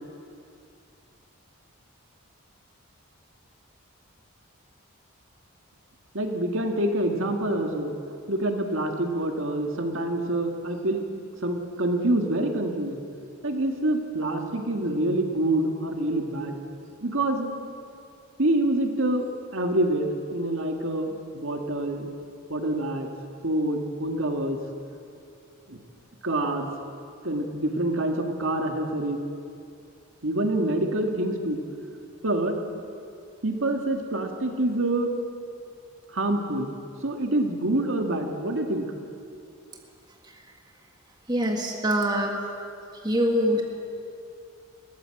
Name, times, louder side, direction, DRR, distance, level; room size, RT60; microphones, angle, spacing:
voice 1, 6.1-7.9 8.3-11.0 11.4-13.0 13.4-16.6 17.0-17.5 18.4-19.3 19.5-22.1 22.5-23.1 23.4-24.6 25.7-25.8 26.2-26.7 27.2-29.2 30.2-31.6 32.2-32.6 33.4-35.1 36.1-36.7 37.0-38.8, right 1 dB, 65° right, 4 dB, 1.9 m, -26 dB
voice 2, 41.3-42.3 43.0-43.6, equal, 20° right, 1 dB, 1.6 m, -24 dB
21.0 x 17.5 x 7.8 m, 2.5 s
head